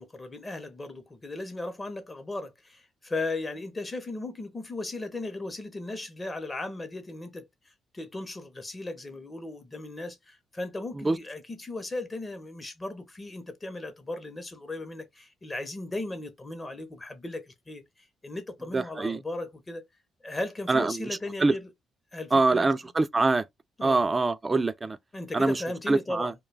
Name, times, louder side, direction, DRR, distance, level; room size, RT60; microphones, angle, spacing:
voice 1, 0.0-19.8 20.2-21.7 22.1-22.7 23.8-24.0 25.1-26.3, left 2 dB, 25° left, 0.6 m, -37 dB
voice 2, 18.7-19.2 20.7-21.1 21.4-21.6 22.3-23.5 23.8-25.0 25.3-25.6 25.9-26.3, right 3 dB, 25° right, 0.3 m, -24 dB
2.3 x 2.2 x 3.2 m
cardioid pair, 90°, 0 cm